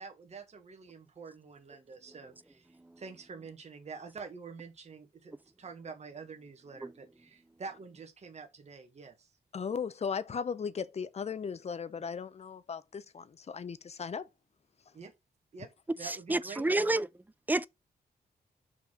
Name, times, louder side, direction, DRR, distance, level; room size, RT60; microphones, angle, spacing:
voice 1, 0.0-9.3 14.9-15.1 15.5-15.7 16.0-17.0, right 5 dB, 45° right, 1.4 m, -47 dB
voice 2, 9.5-14.3, left 6 dB, 40° left, 0.7 m, -37 dB
voice 3, 16.0-17.1 17.5-17.7, right 2 dB, 10° right, 0.4 m, -28 dB
5.8 x 4.3 x 4.5 m
wide cardioid pair, 135°, 16 cm